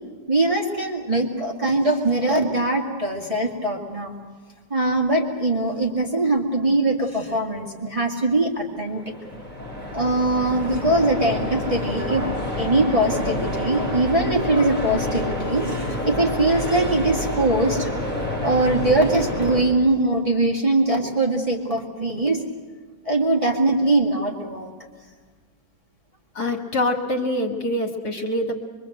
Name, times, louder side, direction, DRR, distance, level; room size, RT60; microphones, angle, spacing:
voice 1, 0.3-4.1 4.7-9.1 9.9-12.2 12.6-17.9 18.4-22.4 23.1-24.7, right 2 dB, 20° right, -2 dB, 2.0 m, -22 dB
sound 1, 8.7-19.6, left 1 dB, 25° left, 6.1 m, -28 dB
voice 2, 26.3-28.6, left 1 dB, 55° left, 2 dB, 2.6 m, -25 dB
24.0 x 23.5 x 7.9 m, 1.5 s
omnidirectional pair, 2.0 m